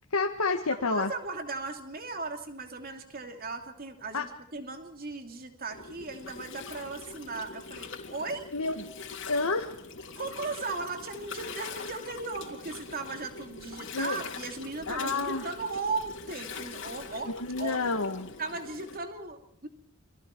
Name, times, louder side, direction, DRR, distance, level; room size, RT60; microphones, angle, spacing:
voice 1, 0.1-1.1 4.1-4.2 8.5-8.7 9.3-9.7 13.9-14.2 14.9-15.4 17.3-18.3, left 3 dB, 90° left, 4 dB, 1.6 m, -29 dB
voice 2, 0.7-8.4 10.2-17.3 17.6-17.9 18.4-19.7, right 3 dB, 45° right, 5 dB, 2.8 m, -37 dB
Gurgling, 5.7-19.0, left 4 dB, 60° left, 3.3 m, -43 dB
29.5 x 24.0 x 4.6 m, 0.68 s
head